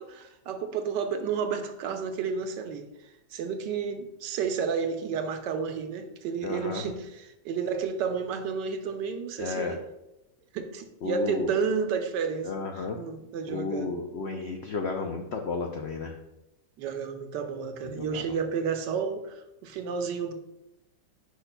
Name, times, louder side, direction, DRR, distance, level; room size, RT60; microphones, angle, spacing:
voice 1, 0.0-9.8 10.5-12.5 12.9-13.9 16.8-20.3, right 6 dB, 85° right, 6 dB, 1.4 m, -31 dB
voice 2, 6.4-6.8 9.4-9.8 11.0-11.6 12.4-13.0 13.5-16.2 17.8-18.4, left 4 dB, 85° left, 3 dB, 0.5 m, -33 dB
10.0 x 5.3 x 2.2 m, 0.93 s
omnidirectional pair, 1.8 m